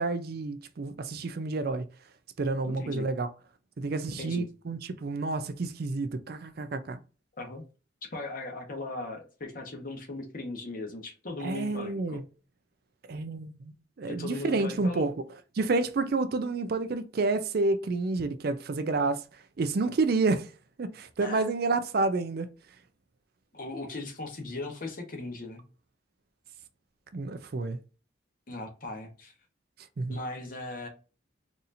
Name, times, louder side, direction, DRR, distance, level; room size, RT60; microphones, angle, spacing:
voice 1, 0.0-1.8 2.4-3.3 3.8-7.0 11.4-12.2 13.1-13.7 14.0-15.1 15.6-19.2 19.6-20.5 20.8-22.5 27.1-27.8 30.0-30.2, right 3 dB, 50° right, 0.4 m, -29 dB
voice 2, 2.6-3.1 4.2-4.5 7.4-7.6 8.1-12.2 14.1-15.1 21.2-21.5 23.5-25.6 28.5-29.3 30.1-30.9, left 2 dB, 45° left, 1.0 m, -38 dB
4.1 x 2.6 x 2.6 m
head